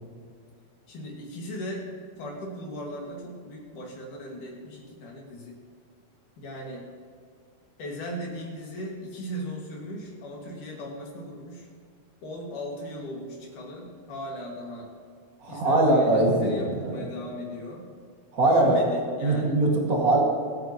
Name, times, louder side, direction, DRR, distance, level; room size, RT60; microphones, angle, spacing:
voice 1, 0.9-1.9 2.2-5.6 6.4-6.9 7.8-11.7 12.2-14.9 15.5-17.9 18.4-19.6, equal, 80° left, -2 dB, 3.8 m, -37 dB
voice 2, 15.4-17.0 18.3-18.8 19.2-20.2, right 2 dB, 30° right, -2 dB, 2.4 m, -22 dB
25.0 x 9.2 x 3.1 m, 2.1 s
omnidirectional pair, 3.6 m